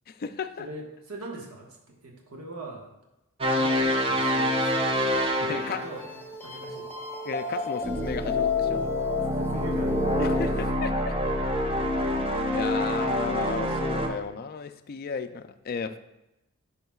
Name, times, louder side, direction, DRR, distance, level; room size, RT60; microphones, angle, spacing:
voice 1, 0.1-0.7 5.4-5.8 7.2-8.9 10.2-11.2 12.5-16.0, left 5 dB, 45° left, 9 dB, 0.4 m, -34 dB
voice 2, 0.6-2.9 3.5-4.8 5.1-6.0 6.4-6.9 9.2-10.2, right 1 dB, 80° right, 0 dB, 1.3 m, -42 dB
sound 1, 3.4-6.1 7.8-14.1, equal, 25° right, 0.7 m, -27 dB
sound 2, 4.3-10.5, left 4 dB, 10° left, 1.4 m, -32 dB
10.5 x 5.7 x 2.3 m, 0.94 s
head